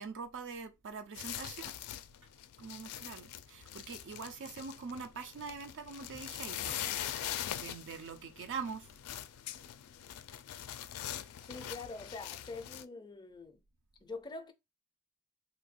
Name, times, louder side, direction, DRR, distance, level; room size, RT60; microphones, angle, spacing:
voice 1, 0.0-1.8 2.6-7.2 7.6-8.9, right 5 dB, 55° right, 0.5 m, -44 dB
sound 1, 1.1-12.8, left 11 dB, 90° left, 0.4 m, -43 dB
sound 2, 2.1-7.6, equal, 90° right, 1.6 m, -64 dB
voice 2, 11.4-13.6 14.0-14.5, left 3 dB, 20° left, 0.4 m, -45 dB
2.8 x 2.2 x 4.2 m
head